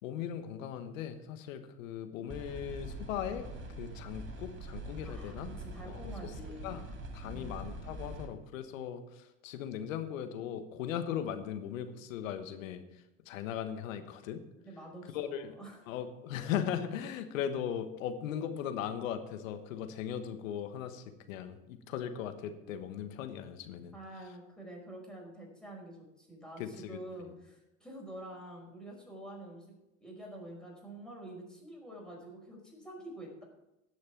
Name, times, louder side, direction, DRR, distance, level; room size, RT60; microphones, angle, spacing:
voice 1, 0.0-3.5 3.8-5.5 5.9-6.3 6.6-6.8 7.1-14.4 15.1-15.5 15.9-23.9 26.6-27.0, left 9 dB, 75° left, 9 dB, 1.3 m, -38 dB
sound 1, 2.3-8.3, right 1 dB, 30° right, 2.3 m, -43 dB
voice 2, 5.0-6.7 7.2-7.6 14.6-15.8 23.9-29.7 30.0-33.4, right 1 dB, ahead, -3 dB, 5.1 m, -47 dB
17.5 x 6.5 x 4.6 m, 0.92 s
hypercardioid pair, 90°, 40 cm